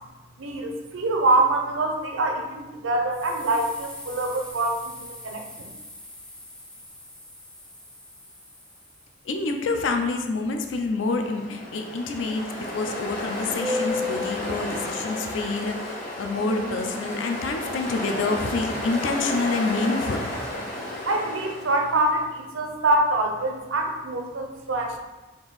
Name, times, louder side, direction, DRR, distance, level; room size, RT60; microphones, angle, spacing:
voice 1, 0.4-5.7 21.1-25.0, right 2 dB, 85° right, 2 dB, 0.6 m, -25 dB
sound 1, 3.1-9.3, left 1 dB, 5° left, 0.4 m, -44 dB
voice 2, 9.2-20.3, left 3 dB, 75° left, 5 dB, 0.4 m, -27 dB
Ocean, 11.0-22.1, left 1 dB, 45° left, 1.0 m, -31 dB
3.7 x 2.6 x 3.9 m, 1.2 s
head